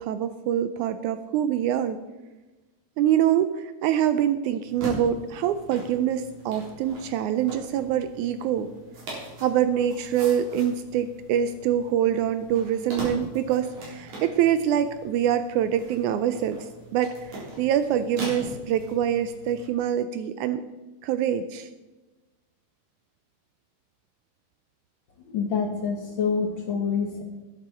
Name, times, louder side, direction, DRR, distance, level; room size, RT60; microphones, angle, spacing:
voice 1, 0.0-2.0 3.0-8.7 9.4-20.7 21.0-21.7, right 10 dB, 80° right, 11 dB, 1.8 m, -25 dB
sound 1, 4.7-19.7, right 2 dB, 60° right, 5.0 m, -41 dB
voice 2, 25.3-27.2, left 5 dB, 75° left, 3 dB, 1.1 m, -26 dB
12.0 x 11.0 x 4.4 m, 1.1 s
omnidirectional pair, 3.8 m